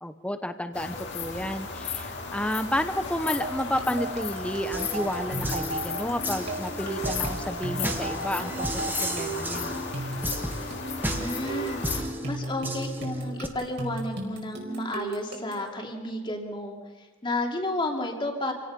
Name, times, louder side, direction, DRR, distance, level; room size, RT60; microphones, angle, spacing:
voice 1, 0.0-9.8, left 1 dB, 5° left, 9 dB, 1.0 m, -31 dB
sound 1, 0.7-12.0, left 5 dB, 55° left, 2.7 m, -35 dB
sound 2, 3.4-15.7, right 2 dB, 55° right, 4.7 m, -36 dB
sound 3, 4.7-13.5, right 1 dB, 10° right, 1.4 m, -35 dB
voice 2, 11.1-16.8 17.2-18.5, left 1 dB, 25° left, 1 dB, 2.7 m, -32 dB
27.5 x 17.5 x 5.4 m, 1.4 s
head